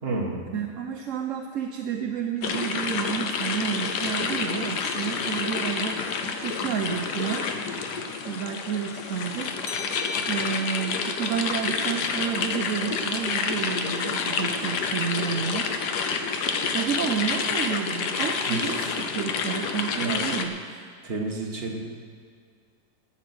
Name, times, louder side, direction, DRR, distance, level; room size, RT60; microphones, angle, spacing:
voice 1, 0.0-0.4 18.5-18.9 20.0-20.3 21.0-21.8, right 2 dB, 35° right, -1 dB, 1.9 m, -31 dB
voice 2, 0.5-7.5 8.2-9.6 10.2-15.7 16.7-20.8, right 7 dB, 60° right, 4 dB, 0.9 m, -30 dB
sound 1, 2.4-20.5, left 5 dB, 90° left, 1.5 m, -29 dB
sound 2, 9.7-13.0, left 7 dB, 40° left, 0.5 m, -39 dB
13.5 x 10.0 x 6.1 m, 2.2 s
omnidirectional pair, 1.7 m